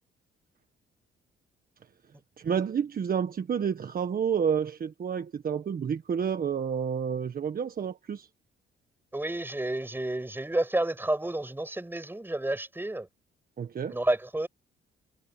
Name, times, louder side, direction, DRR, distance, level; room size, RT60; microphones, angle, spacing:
voice 1, 2.4-8.3 13.6-14.0, right 7 dB, 45° right, 1.6 m, -29 dB
voice 2, 9.1-13.1 13.9-14.5, right 1 dB, 10° right, 8.0 m, -30 dB
cardioid pair, 90°, 20 cm